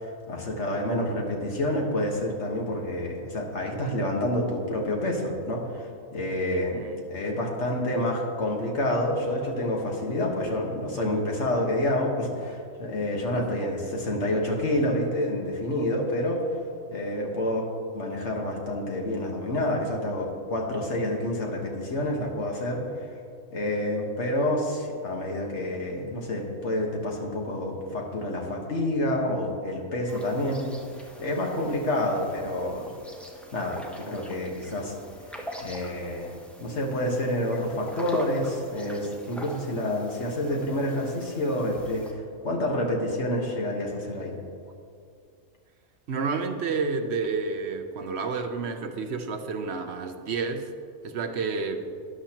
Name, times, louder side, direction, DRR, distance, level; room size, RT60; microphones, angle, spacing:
voice 1, 0.0-6.8 7.1-16.4 16.9-23.1 23.5-30.7 31.2-32.9 33.5-34.9 35.6-36.3 36.6-44.4, left 1 dB, 60° left, 0 dB, 1.7 m, -28 dB
sound 1, 30.1-42.1, equal, ahead, 0.7 m, -43 dB
voice 2, 46.1-50.7 51.0-51.8, right 4 dB, 60° right, 7 dB, 1.0 m, -30 dB
12.5 x 10.5 x 2.9 m, 2.3 s
omnidirectional pair, 1.3 m